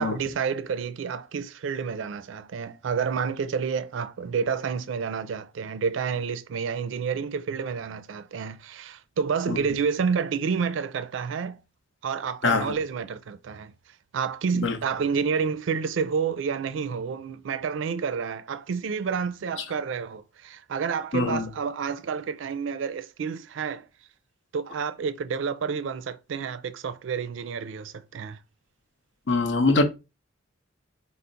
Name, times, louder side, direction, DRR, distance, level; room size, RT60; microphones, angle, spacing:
voice 1, 0.0-11.6 12.0-13.7 14.1-23.9 24.5-28.4, right 6 dB, 75° right, 0.4 m, -29 dB
voice 2, 12.4-12.7 14.6-14.7 21.1-21.5 29.3-29.8, left 3 dB, 65° left, 0.6 m, -23 dB
4.4 x 2.0 x 3.8 m
head